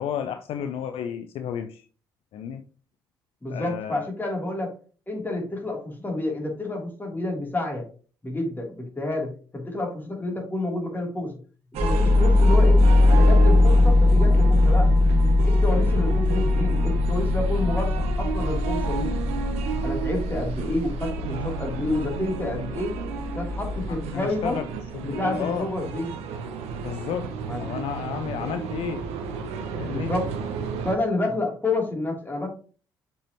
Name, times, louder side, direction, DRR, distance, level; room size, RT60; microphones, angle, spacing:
voice 1, 0.0-1.9 2.3-2.6 3.5-4.1 23.9-24.7 24.9-25.7 26.8-27.3 27.6-29.1 29.8-30.1, left 9 dB, 55° left, 0.5 m, -32 dB
voice 2, 3.4-4.7 5.1-7.8 8.2-11.3 11.8-12.8 13.1-14.9 15.4-19.1 19.8-23.0 23.3-24.6 25.0-26.1 27.5-27.7 29.9-30.3 30.8-32.5, left 2 dB, 15° left, 3.3 m, -29 dB
sound 1, 11.7-31.0, right 6 dB, 65° right, 0.9 m, -33 dB
sound 2, 11.8-24.4, left 2 dB, ahead, 1.5 m, -21 dB
6.8 x 5.5 x 3.0 m
figure-of-eight pair, 45°, 11 cm